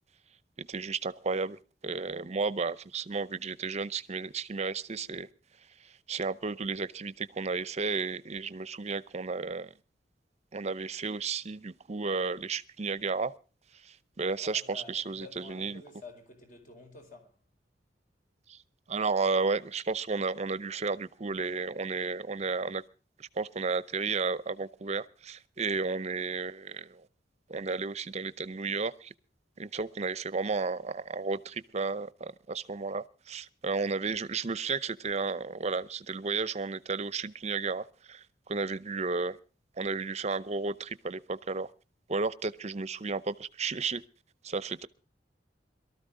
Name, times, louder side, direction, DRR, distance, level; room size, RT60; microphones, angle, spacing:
voice 1, 0.6-5.3 5.8-9.7 10.5-13.3 13.8-15.8 18.5-18.6 18.9-22.8 23.2-27.1 27.5-29.1 29.6-39.4 39.8-41.7 42.1-44.0 44.4-44.9, right 4 dB, 40° right, 0.7 m, -33 dB
voice 2, 14.4-17.3 44.6-44.7, left 3 dB, 50° left, 4.7 m, -50 dB
22.5 x 13.5 x 3.7 m
head